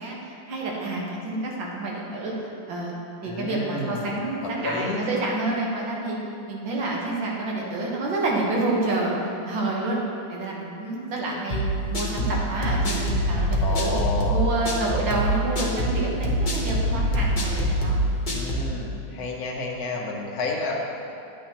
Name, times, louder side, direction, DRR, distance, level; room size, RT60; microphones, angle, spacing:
voice 1, 0.0-2.9 3.2-6.2 6.5-10.0 10.3-11.6 11.9-13.9 14.3-18.0, right 2 dB, 75° right, -3 dB, 2.0 m, -28 dB
voice 2, 3.2-4.2 4.6-5.0 13.6-14.4 18.3-20.8, left 3 dB, 55° left, 0 dB, 1.3 m, -30 dB
sound 1, 11.5-18.7, equal, 35° left, 0.8 m, -24 dB
10.0 x 8.6 x 2.9 m, 2.6 s
omnidirectional pair, 2.1 m